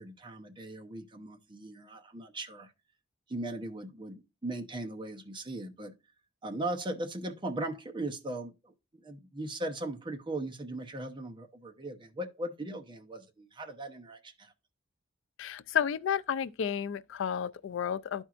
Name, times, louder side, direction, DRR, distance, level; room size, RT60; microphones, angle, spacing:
voice 1, 0.0-2.7 3.3-6.0 6.4-14.5, right 1 dB, 25° right, 0.8 m, -38 dB
voice 2, 15.4-18.2, left 8 dB, 70° left, 0.3 m, -31 dB
12.5 x 4.4 x 2.5 m
head